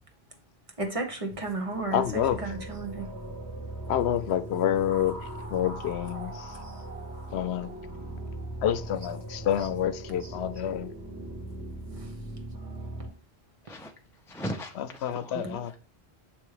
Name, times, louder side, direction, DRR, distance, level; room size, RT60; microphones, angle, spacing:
voice 1, 0.8-3.1 9.6-9.7 10.2-10.3, right 2 dB, 35° right, 1.0 m, -33 dB
sound 1, 1.6-13.1, right 1 dB, 75° right, 2.0 m, -39 dB
voice 2, 1.9-2.4 3.9-5.2 5.5-6.6 7.3-7.7 8.6-10.9 14.8-15.7, left 10 dB, 80° left, 0.8 m, -28 dB
voice 3, 14.3-15.8, equal, 5° left, 0.4 m, -38 dB
6.9 x 3.1 x 4.8 m
omnidirectional pair, 1.1 m